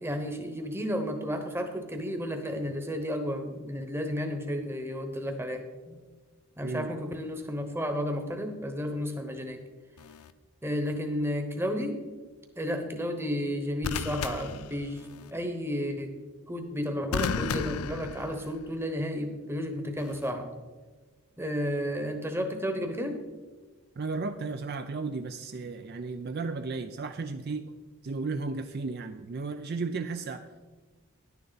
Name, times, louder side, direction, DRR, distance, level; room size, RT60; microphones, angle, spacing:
voice 1, 0.0-6.0 6.6-9.7 10.6-12.0 12.6-16.1 16.5-20.5 21.4-23.2, equal, 10° right, 6 dB, 1.0 m, -32 dB
sound 1, 10.0-10.3 13.8-15.3 17.1-18.8 20.0-20.3, left 6 dB, 85° left, 0.5 m, -34 dB
voice 2, 24.0-27.7 28.0-30.5, right 4 dB, 45° right, 8 dB, 0.4 m, -34 dB
10.5 x 10.0 x 4.0 m, 1.3 s
head